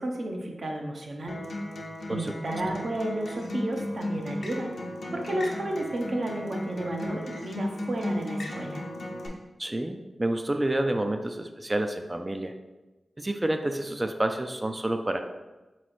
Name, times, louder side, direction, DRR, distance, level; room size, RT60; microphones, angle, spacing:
voice 1, 0.0-1.4 2.1-4.7 5.1-8.8, right 1 dB, 60° right, 1 dB, 0.7 m, -32 dB
Acoustic guitar, 1.3-9.3, left 1 dB, 75° left, 0.7 m, -35 dB
voice 2, 9.6-12.5 13.2-15.2, right 1 dB, 25° right, 6 dB, 0.3 m, -29 dB
3.8 x 3.1 x 4.2 m, 1.1 s
cardioid pair, 60°, 0 cm